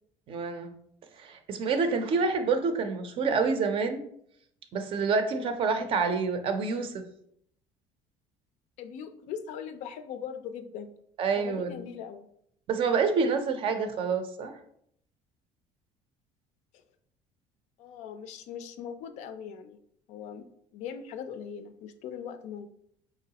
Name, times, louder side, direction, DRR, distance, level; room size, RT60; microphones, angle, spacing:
voice 1, 0.3-0.7 1.2-4.0 4.7-7.0 11.2-11.8 12.7-14.5, right 4 dB, 45° right, 8 dB, 0.5 m, -27 dB
voice 2, 8.8-10.9 11.3-12.3 17.8-19.8 20.1-20.5 20.7-22.7, left 7 dB, 65° left, 10 dB, 0.4 m, -40 dB
4.6 x 3.0 x 2.8 m, 0.70 s
cardioid pair, 160°, 13 cm